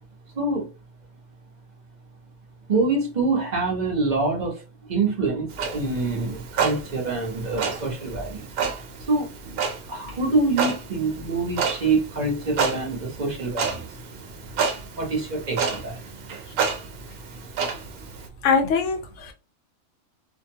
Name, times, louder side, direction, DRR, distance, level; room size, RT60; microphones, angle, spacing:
voice 1, 0.3-0.7 2.7-8.5 9.1-9.3 9.9-13.9 15.0-16.0, right 3 dB, 40° right, -1 dB, 0.8 m, -25 dB
Clock, 5.5-18.3, right 5 dB, 85° right, 1.1 m, -30 dB
voice 2, 18.4-19.3, left 5 dB, 65° left, 5 dB, 0.8 m, -22 dB
2.6 x 2.1 x 2.7 m, 0.29 s
omnidirectional pair, 1.5 m